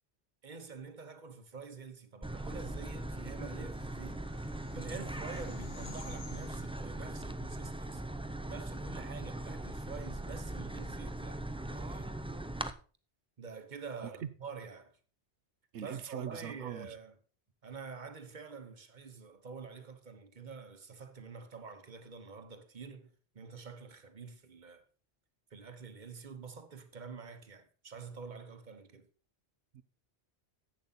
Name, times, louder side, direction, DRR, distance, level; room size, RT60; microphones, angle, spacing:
voice 1, 0.4-8.2 8.5-12.2 13.4-15.0 15.8-17.2 17.6-24.8 25.5-29.1, right 5 dB, 45° right, 1.2 m, -47 dB
sound 1, 2.2-12.7, right 1 dB, 10° right, 0.3 m, -40 dB
sound 2, 3.6-8.6, left 6 dB, 65° left, 1.2 m, -56 dB
voice 2, 15.7-16.9 29.7-29.8, right 9 dB, 85° right, 1.1 m, -41 dB
11.0 x 8.2 x 4.1 m
omnidirectional pair, 1.1 m